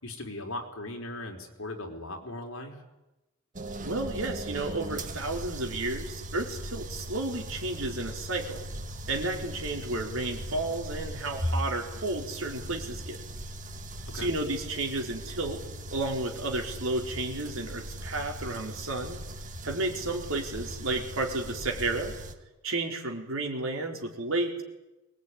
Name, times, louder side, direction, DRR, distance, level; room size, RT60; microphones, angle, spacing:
voice 1, 0.0-2.7 14.1-14.3, left 2 dB, 70° left, 3 dB, 4.3 m, -38 dB
sound 1, 3.5-22.3, right 1 dB, 35° right, 1.7 m, -39 dB
voice 2, 3.8-8.6 9.1-13.2 14.1-15.6 15.9-19.2 19.6-22.1 22.6-24.6, right 2 dB, 70° right, 2 dB, 4.5 m, -32 dB
24.0 x 20.5 x 9.8 m, 1.0 s
head